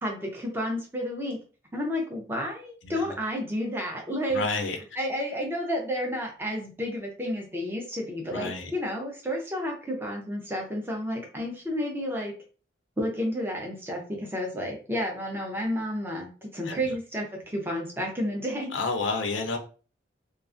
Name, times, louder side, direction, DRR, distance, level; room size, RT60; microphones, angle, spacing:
voice 1, 0.0-1.4 1.7-12.3 13.0-18.7, equal, 10° right, 0.5 m, -31 dB
voice 2, 4.3-4.8 8.3-8.7 16.7-16.8 18.7-19.6, left 3 dB, 80° left, 0.5 m, -29 dB
2.3 x 2.3 x 2.5 m
head